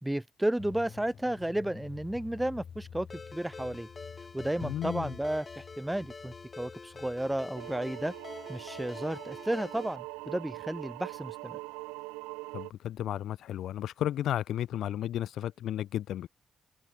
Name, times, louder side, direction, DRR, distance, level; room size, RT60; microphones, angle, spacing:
voice 1, 0.0-3.9 4.3-8.1 8.5-11.6, right 1 dB, 10° right, 1.7 m, -33 dB
sound 1, 0.6-10.5 10.7-10.8, left 7 dB, 60° left, 1.6 m, -50 dB
Ringtone, 3.1-10.0, left 4 dB, 40° left, 5.2 m, -46 dB
voice 2, 4.6-5.1 12.5-16.3, left 11 dB, 75° left, 0.8 m, -33 dB
sound 2, 7.5-12.7, right 26 dB, 90° right, 0.4 m, -42 dB
hypercardioid pair, 45°, 0 cm